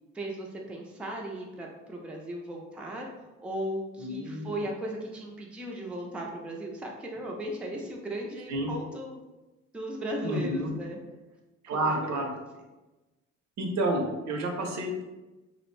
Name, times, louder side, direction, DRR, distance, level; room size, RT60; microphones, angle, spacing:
voice 1, 0.1-3.1 3.4-9.2 9.7-11.0 11.7-11.8, right 1 dB, 5° right, -1 dB, 0.3 m, -36 dB
voice 2, 4.0-4.5 8.5-8.7 10.2-10.7 11.6-12.3 13.6-15.0, right 1 dB, 65° right, 2 dB, 0.6 m, -30 dB
2.5 x 2.0 x 3.0 m, 1.1 s
cardioid pair, 90°, 30 cm